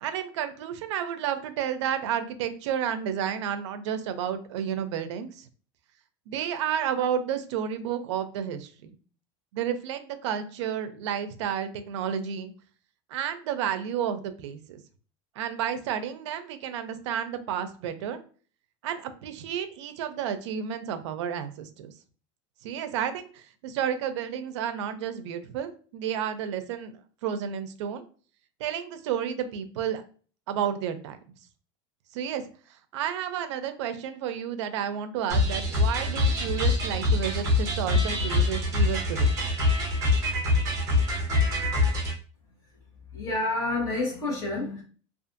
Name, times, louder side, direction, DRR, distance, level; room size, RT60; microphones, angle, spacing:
voice 1, 0.0-5.5 6.3-8.9 9.5-12.5 13.1-14.8 15.4-18.2 18.8-21.9 22.6-26.9 27.2-28.0 28.6-30.0 30.5-31.2 32.1-32.4 32.9-39.3, right 9 dB, 85° right, 10 dB, 0.4 m, -31 dB
sound 1, 35.3-42.1, left 2 dB, 20° right, 0.7 m, -24 dB
voice 2, 43.1-44.8, left 2 dB, 25° left, -5 dB, 1.0 m, -29 dB
2.5 x 2.4 x 2.5 m, 0.40 s
supercardioid pair, 180°, 15 cm